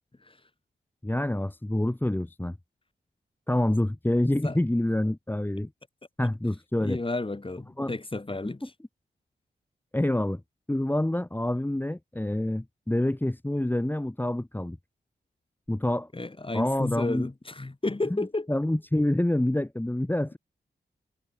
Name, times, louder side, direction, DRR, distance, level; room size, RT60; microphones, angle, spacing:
voice 1, 1.0-2.5 3.5-5.7 6.2-7.0 7.8-7.9 8.6-8.7 9.9-10.4 10.7-14.8 15.7-16.1 16.5-17.3 18.1-20.4, left 1 dB, 10° left, 1.3 m, -27 dB
voice 2, 6.8-8.6 16.1-18.5, left 2 dB, 30° left, 4.8 m, -32 dB
cardioid pair, 60°, 18 cm